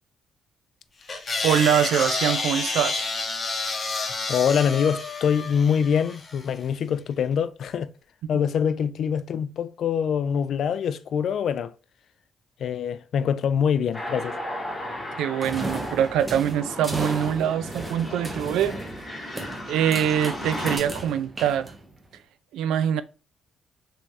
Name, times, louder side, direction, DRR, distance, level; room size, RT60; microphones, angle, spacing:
sound 1, 1.1-6.4, left 3 dB, 35° left, 0.8 m, -29 dB
voice 1, 1.4-3.1 15.2-18.7 19.1-19.3 19.7-21.7 22.5-23.0, right 10 dB, 85° right, 0.3 m, -24 dB
voice 2, 4.3-7.9 8.3-11.7 12.6-14.4, left 7 dB, 65° left, 0.3 m, -24 dB
sound 2, 13.9-20.8, left 1 dB, 10° left, 1.5 m, -35 dB
sound 3, 15.4-22.1, right 2 dB, 20° right, 0.8 m, -35 dB
3.6 x 3.0 x 2.7 m
cardioid pair, 90°, 0 cm